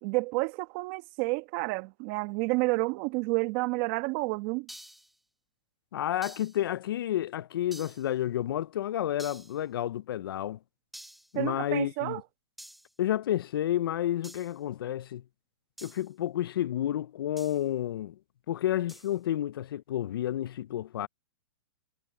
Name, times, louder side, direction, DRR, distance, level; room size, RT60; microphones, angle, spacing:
voice 1, 0.0-4.7 11.3-12.2, right 25 dB, 35° right, 1.4 m, -30 dB
sound 1, 4.7-5.2 6.2-6.6 7.7-8.1 9.2-9.6 10.9-11.3 12.6-12.9 14.2-14.6 15.8-16.1 17.4-17.7 18.9-19.2, right 1 dB, ahead, 0.7 m, -48 dB
voice 2, 5.9-10.6 11.3-12.2 13.0-15.2 15.8-18.2 18.5-21.1, left 12 dB, 60° left, 0.5 m, -30 dB
hypercardioid pair, 155°, 13 cm